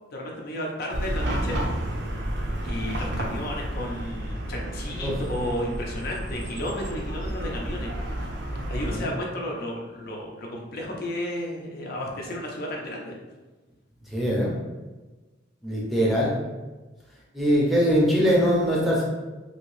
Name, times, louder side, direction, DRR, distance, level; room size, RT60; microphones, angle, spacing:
voice 1, 0.1-1.6 2.6-8.3 8.7-13.1 16.0-16.1, left 1 dB, 50° left, -1 dB, 0.5 m, -33 dB
Chatter / Car passing by / Traffic noise roadway noise, 0.9-9.0, right 1 dB, 60° right, 0.5 m, -31 dB
voice 2, 14.1-14.5 15.6-16.3 17.3-19.0, equal, ahead, -5 dB, 0.6 m, -22 dB
2.8 x 2.7 x 3.1 m, 1.2 s
head